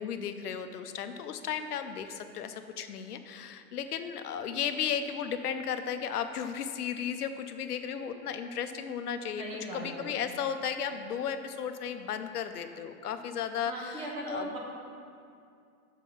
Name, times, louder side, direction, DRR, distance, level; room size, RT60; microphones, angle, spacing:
voice 1, 0.0-9.4 9.7-14.6, left 8 dB, 90° left, 8 dB, 0.8 m, -35 dB
voice 2, 9.4-10.1 13.6-14.6, right 1 dB, 15° right, -2 dB, 0.6 m, -38 dB
7.3 x 5.2 x 5.8 m, 2.4 s
hypercardioid pair, 155°, 44 cm